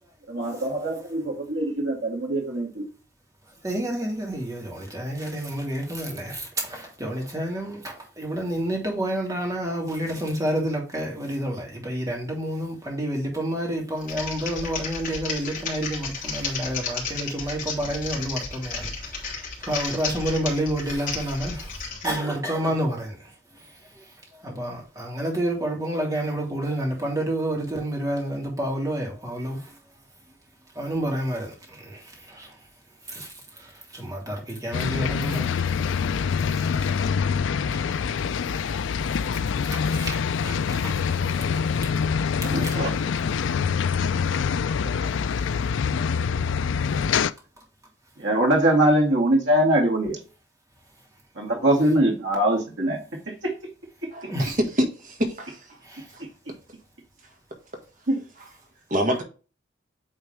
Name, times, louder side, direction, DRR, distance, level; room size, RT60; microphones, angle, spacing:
voice 1, 0.3-2.9 42.4-42.9 48.2-50.2 51.3-53.0 53.3-53.7 56.2-56.3 58.1-58.2, right 1 dB, 75° right, 2.4 m, -23 dB
voice 2, 3.6-19.3 19.7-21.7 22.0-23.2 24.4-29.6 30.8-32.5 33.1-33.3 33.6-35.5 36.8-36.9 37.6-37.9 38.6-38.8 39.9-40.9 42.6-42.7 54.3-54.5 55.9-56.0, right 1 dB, 20° right, 2.2 m, -29 dB
Typing, 14.0-22.1, left 4 dB, 45° left, 2.8 m, -33 dB
sound 1, 34.7-47.3, left 6 dB, 80° left, 0.4 m, -25 dB
voice 3, 54.1-54.5 55.0-55.6 56.1-56.2 58.9-59.2, equal, 45° right, 1.6 m, -27 dB
8.8 x 3.6 x 3.4 m
head